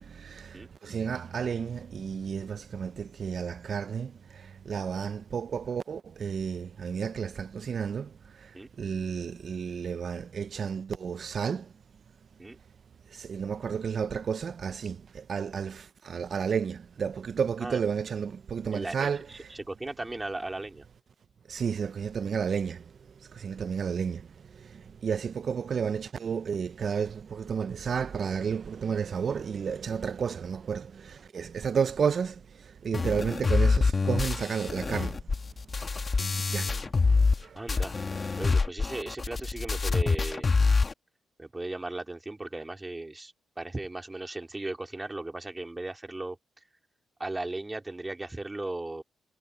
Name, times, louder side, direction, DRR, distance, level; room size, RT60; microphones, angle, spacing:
voice 1, 0.0-11.7 13.1-19.5 21.5-35.2 36.1-36.7 37.4-37.6, right 6 dB, 55° right, 0.8 m, -32 dB
voice 2, 18.7-20.8 23.6-23.7 36.6-36.8 37.5-37.9 38.4-40.5 41.4-46.4 47.2-49.0, right 2 dB, 20° right, 2.6 m, -37 dB
sound 1, 32.9-37.4 37.7-40.9, left 4 dB, 40° left, 1.9 m, -26 dB
supercardioid pair, 55°, 0 cm